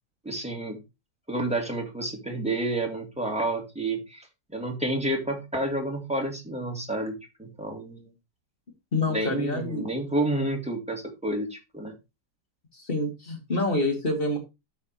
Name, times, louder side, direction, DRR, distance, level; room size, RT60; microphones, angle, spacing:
voice 1, 0.2-0.8 1.3-4.3 4.5-8.1 9.1-11.9, right 1 dB, 5° right, 1 dB, 2.1 m, -30 dB
voice 2, 8.9-9.9 12.7-14.4, left 2 dB, 30° left, 2 dB, 2.4 m, -27 dB
13.5 x 5.3 x 3.0 m, 0.24 s
omnidirectional pair, 1.8 m